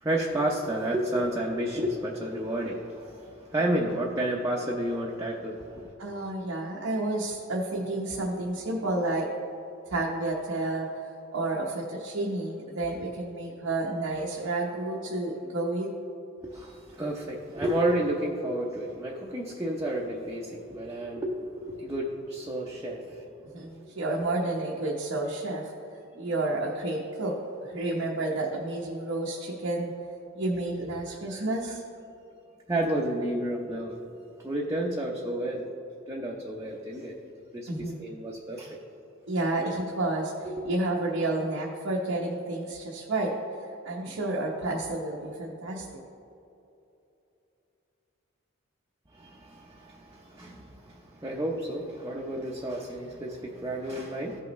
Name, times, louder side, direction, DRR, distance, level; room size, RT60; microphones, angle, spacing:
voice 1, 0.0-5.9 16.4-23.3 31.3-31.4 32.7-34.0 34.4-35.7 36.1-37.2 37.5-38.8 40.4-40.5 49.1-54.4, right 1 dB, 15° right, -3 dB, 0.7 m, -31 dB
voice 2, 6.0-9.3 9.9-15.9 23.5-25.7 26.2-27.4 27.6-29.9 30.3-31.8 37.7-38.0 39.3-43.3 43.6-45.9, right 2 dB, 90° right, -3 dB, 1.0 m, -30 dB
15.0 x 5.7 x 3.1 m, 2.8 s
head